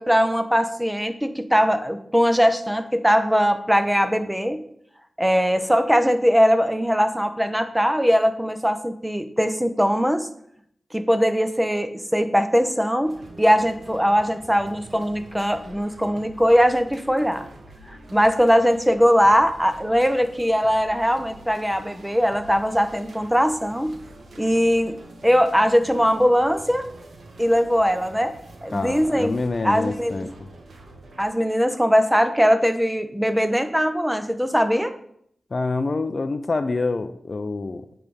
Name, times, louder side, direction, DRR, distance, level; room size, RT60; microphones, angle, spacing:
voice 1, 0.0-4.6 5.2-10.3 10.9-17.5 17.9-24.0 24.4-25.0 25.2-26.9 27.4-28.3 28.6-29.3 29.6-30.3 31.2-34.9, equal, 5° right, 9 dB, 0.8 m, -20 dB
sound 1, 13.0-31.3, right 2 dB, 80° right, 1.0 m, -46 dB
voice 2, 28.7-30.3 35.5-37.9, left 3 dB, 55° left, 11 dB, 0.5 m, -26 dB
8.3 x 3.4 x 5.3 m, 0.69 s
cardioid pair, 50°, 0 cm